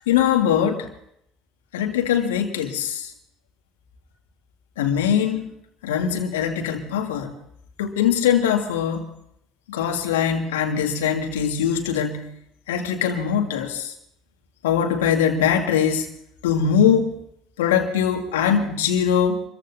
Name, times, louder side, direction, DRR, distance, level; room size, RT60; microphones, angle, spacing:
voice 1, 0.1-0.9 1.7-3.1 4.8-5.5 5.8-7.3 7.8-9.1 9.7-12.3 12.7-13.9 14.6-16.1 16.4-17.1 17.6-19.4, left 8 dB, 85° left, 3 dB, 2.0 m, -21 dB
27.5 x 15.0 x 2.7 m, 0.73 s
hypercardioid pair, 65°, 0 cm